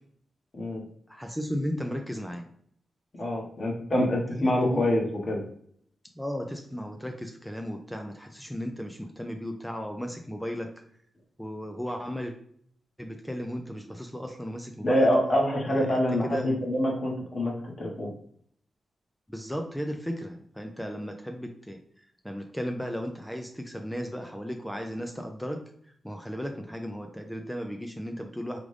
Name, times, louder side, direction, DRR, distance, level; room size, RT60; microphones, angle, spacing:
voice 1, 1.1-2.4 4.5-4.8 6.2-10.7 11.4-12.3 13.0-15.1 15.6-16.5 19.3-21.8 22.2-25.6 26.0-28.6, equal, 5° left, 4 dB, 0.4 m, -35 dB
voice 2, 3.2-5.4 14.8-18.1, left 1 dB, 35° left, -2 dB, 1.3 m, -26 dB
4.9 x 2.5 x 3.3 m, 0.63 s
wide cardioid pair, 150°, 0 cm